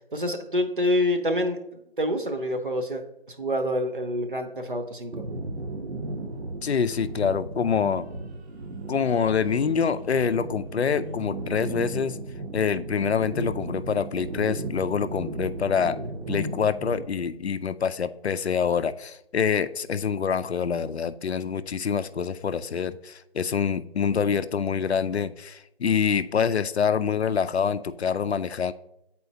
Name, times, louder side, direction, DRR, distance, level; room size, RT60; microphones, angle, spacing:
voice 1, 0.1-5.2, left 1 dB, 55° right, 6 dB, 0.7 m, -27 dB
sound 1, 5.1-17.0, right 2 dB, 85° right, 0.9 m, -35 dB
voice 2, 6.6-8.1 8.9-12.2 12.5-16.0 16.3-28.7, left 6 dB, 80° left, 13 dB, 0.5 m, -26 dB
8.1 x 4.3 x 2.7 m, 0.84 s
figure-of-eight pair, 175°, 32 cm